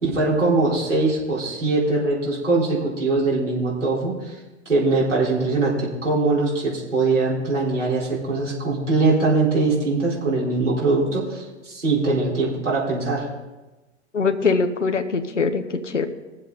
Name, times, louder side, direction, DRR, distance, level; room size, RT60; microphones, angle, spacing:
voice 1, 0.0-4.3 4.7-13.3, right 3 dB, 85° right, -6 dB, 4.0 m, -22 dB
voice 2, 14.1-16.1, left 4 dB, 85° left, 8 dB, 1.0 m, -22 dB
19.5 x 7.6 x 4.0 m, 1.1 s
figure-of-eight pair, 95°, 35 cm